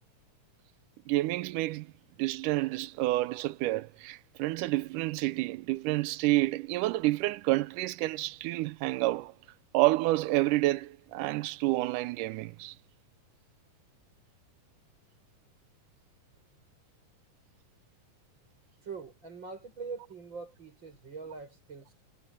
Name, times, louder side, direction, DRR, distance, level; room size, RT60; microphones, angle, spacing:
voice 1, 1.1-1.9 2.2-9.3 9.7-12.8, right 18 dB, 85° right, 2.2 m, -29 dB
voice 2, 18.8-22.0, right 5 dB, 35° right, 7.5 m, -43 dB
omnidirectional pair, 3.7 m